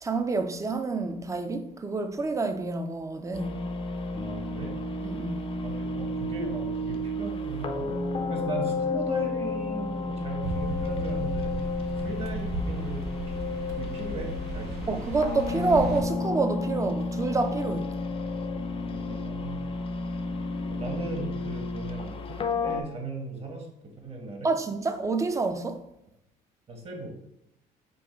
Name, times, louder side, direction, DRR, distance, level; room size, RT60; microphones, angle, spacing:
voice 1, 0.0-3.6 5.0-5.4 14.9-17.9 24.4-25.8, right 3 dB, 20° right, 0.5 m, -28 dB
sound 1, 3.3-22.8, left 2 dB, 35° left, 0.5 m, -32 dB
voice 2, 4.1-4.8 5.6-11.5 12.0-13.2 13.8-14.9 18.9-19.7 20.7-23.7 24.0-24.5 26.7-27.1, right 2 dB, 35° right, 1.2 m, -38 dB
sound 2, 10.4-16.0, right 1 dB, 70° right, 0.8 m, -35 dB
5.3 x 2.2 x 4.4 m
cardioid pair, 110°, 17 cm